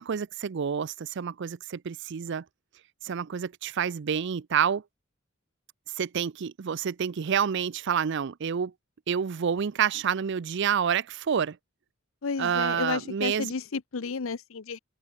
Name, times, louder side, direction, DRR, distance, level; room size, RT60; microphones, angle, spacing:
voice 1, 0.0-2.4 3.0-4.8 6.0-8.7 9.1-11.6 12.4-13.5, right 7 dB, 60° right, 0.5 m, -28 dB
voice 2, 12.2-14.8, left 4 dB, 85° left, 0.7 m, -32 dB
head